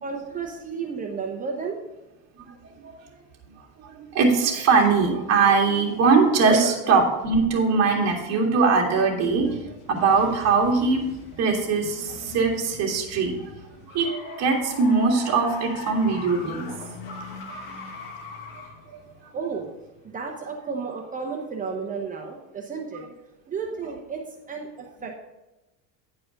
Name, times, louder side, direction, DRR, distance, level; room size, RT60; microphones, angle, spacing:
voice 1, 0.0-1.8 6.5-6.7 19.3-19.7 20.0-23.0 23.5-25.2, right 5 dB, 20° right, 1 dB, 0.8 m, -32 dB
voice 2, 3.8-9.6 9.9-11.0 11.4-13.4 13.9-16.7, right 4 dB, 40° right, -1 dB, 2.0 m, -21 dB
sound 1, 6.1-7.2 7.6-20.2, left 3 dB, 60° left, 1.6 m, -41 dB
10.0 x 4.8 x 5.1 m, 1.0 s
cardioid pair, 150°, 38 cm